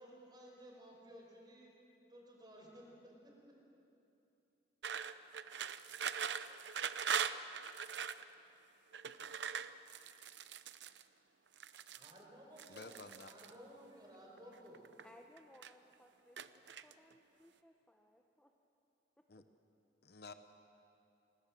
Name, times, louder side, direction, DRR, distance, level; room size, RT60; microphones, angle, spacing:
voice 1, 0.0-3.3 11.9-14.8, equal, 25° right, -1 dB, 5.3 m, -56 dB
sound 1, 4.8-8.2 8.9-11.0 11.5-12.2 12.6-13.5 14.4-15.1 15.4-15.9 16.4-17.1, right 7 dB, 90° right, 0.8 m, -41 dB
voice 2, 12.7-13.3 19.3-19.5 20.0-20.3, left 3 dB, 60° left, 9 dB, 1.0 m, -52 dB
voice 3, 15.0-18.5, equal, 5° left, 2 dB, 1.0 m, -63 dB
28.0 x 21.0 x 7.6 m, 2.8 s
head